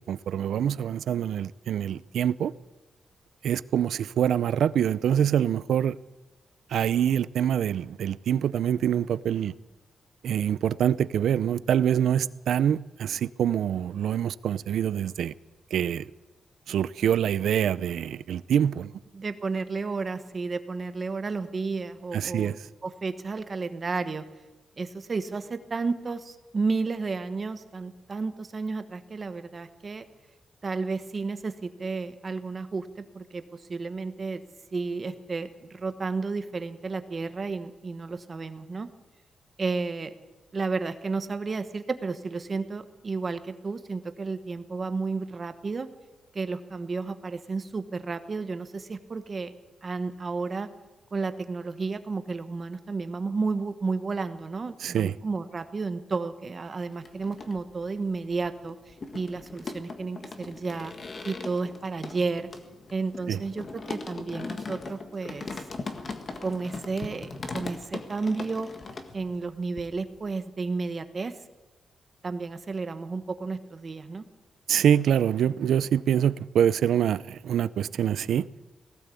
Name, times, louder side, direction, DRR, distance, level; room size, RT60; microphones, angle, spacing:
voice 1, 0.1-2.5 3.4-6.0 6.7-9.5 10.2-15.3 15.7-16.1 16.7-18.9 22.1-22.5 54.8-55.1 63.3-63.4 74.7-78.5, right 9 dB, 80° right, 0.6 m, -25 dB
voice 2, 19.1-22.6 22.8-24.2 24.8-30.1 30.6-34.4 34.7-38.9 39.6-40.2 40.5-45.9 46.3-49.5 49.8-50.7 51.1-60.9 61.2-62.5 62.9-65.5 66.4-68.7 69.1-71.3 72.2-74.2, right 4 dB, 30° right, 1.2 m, -32 dB
sound 1, 56.9-57.9 58.2-69.5 69.8-70.3, left 3 dB, 30° left, 1.7 m, -39 dB
19.0 x 16.5 x 8.4 m
wide cardioid pair, 180°, 0 cm